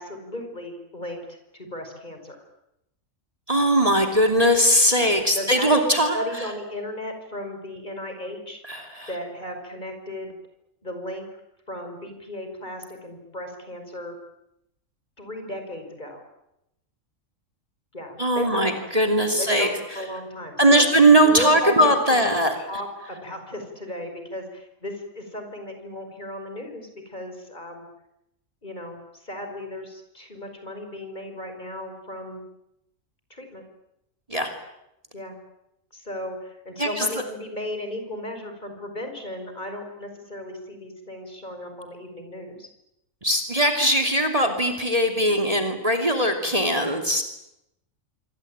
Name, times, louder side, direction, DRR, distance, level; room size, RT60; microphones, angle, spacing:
voice 1, 0.0-2.4 4.0-4.1 5.0-8.6 9.1-10.4 10.8-11.3 11.7-14.2 15.2-16.2 17.9-18.8 19.4-20.9 21.2-22.2 22.5-27.9 28.6-32.4 33.3-33.6 35.1-35.4 35.9-42.7, left 1 dB, 35° left, 5 dB, 5.5 m, -35 dB
voice 2, 3.5-6.2 8.7-9.1 18.2-19.7 20.6-22.6 34.3-34.5 36.8-37.1 43.2-47.2, right 1 dB, 25° right, 5 dB, 3.0 m, -20 dB
26.5 x 25.0 x 8.9 m, 0.85 s
omnidirectional pair, 1.4 m